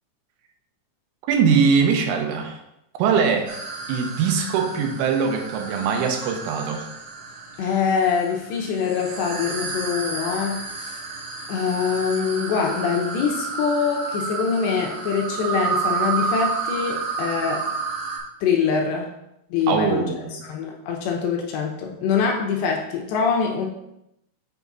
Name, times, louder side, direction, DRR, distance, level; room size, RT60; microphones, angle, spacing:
voice 1, 1.3-2.6 3.0-3.5 3.9-6.9 19.7-20.4, right 6 dB, 85° right, 4 dB, 3.4 m, -21 dB
sound 1, 3.5-18.2, right 5 dB, 70° right, 4.0 m, -31 dB
voice 2, 7.6-11.0 11.5-17.7 18.4-19.1 19.5-20.1 20.4-23.7, left 6 dB, 75° left, 1 dB, 2.9 m, -24 dB
7.4 x 6.1 x 4.1 m, 0.84 s
omnidirectional pair, 5.5 m